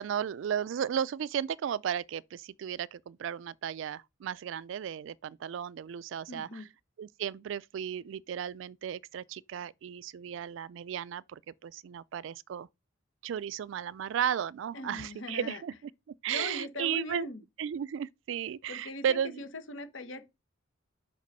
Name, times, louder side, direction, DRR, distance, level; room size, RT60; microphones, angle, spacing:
voice 1, 0.0-6.6 7.0-12.7 13.2-15.7 16.2-17.3 17.6-19.4, right 8 dB, 70° right, 0.3 m, -34 dB
voice 2, 6.3-6.7 14.7-15.6 16.3-17.4 18.7-20.3, left 2 dB, 75° left, 1.1 m, -40 dB
5.2 x 4.8 x 5.3 m
head